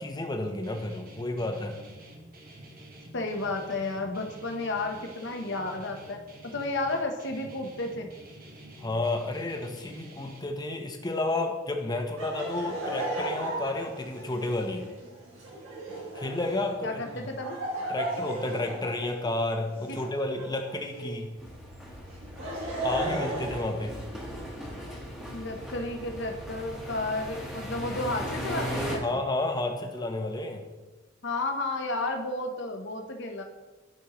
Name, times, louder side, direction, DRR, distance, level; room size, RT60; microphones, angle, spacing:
voice 1, 0.0-1.8 8.8-14.9 16.1-17.2 17.9-21.3 22.8-24.0 29.0-30.6, left 2 dB, 20° left, 4 dB, 0.8 m, -31 dB
Guitar, 0.6-10.4, right 1 dB, 50° right, 1.0 m, -48 dB
voice 2, 3.1-8.1 16.8-17.6 19.9-20.0 25.3-29.2 31.2-33.4, left 2 dB, 60° left, 4 dB, 0.9 m, -32 dB
Laughter, 12.2-21.2 22.1-24.4, right 1 dB, 85° right, 2.2 m, -36 dB
sound 1, 21.4-29.0, equal, 5° right, 1.2 m, -38 dB
11.5 x 5.3 x 3.0 m, 1.2 s
head